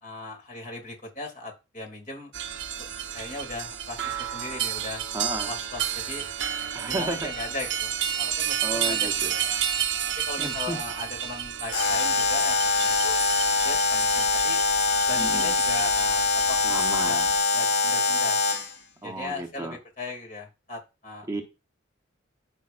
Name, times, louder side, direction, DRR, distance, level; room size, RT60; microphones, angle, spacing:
voice 1, 0.0-2.3 2.8-2.9 3.1-5.0 5.5-6.2 6.8-9.6 10.2-13.2 13.6-14.6 15.1-16.2 16.5-16.6 16.9-17.2 17.5-18.4 19.0-21.3, left 3 dB, 40° left, 2.4 m, -38 dB
sound 1, 2.3-17.4, right 9 dB, 70° right, 0.9 m, -31 dB
voice 2, 5.1-5.5 6.7-7.3 8.6-9.3 10.4-10.8 15.2-15.6 16.6-17.3 19.0-19.8 21.3-21.4, right 2 dB, 15° right, 0.9 m, -33 dB
Alarm, 11.7-18.7, left 3 dB, 60° left, 2.3 m, -23 dB
14.0 x 5.3 x 2.5 m
head